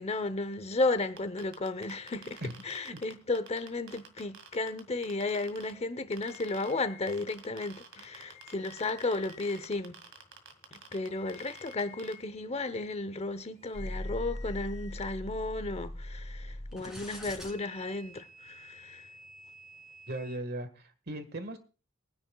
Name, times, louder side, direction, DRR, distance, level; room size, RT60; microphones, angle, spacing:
voice 1, 0.0-10.0 10.7-19.1, left 2 dB, 30° left, 0.8 m, -34 dB
sound 1, 1.2-5.7 6.1-6.7 7.1-12.1, right 6 dB, 75° right, 2.1 m, -49 dB
sound 2, 6.2-7.2 8.0-9.6 10.9-12.2 13.5-15.2, left 12 dB, 60° left, 1.3 m, -54 dB
sound 3, 13.7-20.4, equal, ahead, 2.9 m, -42 dB
voice 2, 20.1-21.6, right 1 dB, 50° right, 1.6 m, -37 dB
23.5 x 9.8 x 2.3 m
head